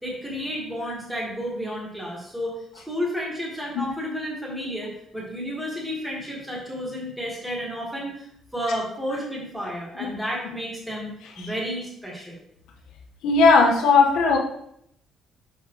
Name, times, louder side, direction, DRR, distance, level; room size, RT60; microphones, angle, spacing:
voice 1, 0.0-2.6 2.9-12.4, equal, 5° right, -4 dB, 1.5 m, -31 dB
voice 2, 13.2-14.4, left 4 dB, 85° left, 0 dB, 1.2 m, -17 dB
6.4 x 5.5 x 3.0 m, 0.71 s
cardioid pair, 170°, 0 cm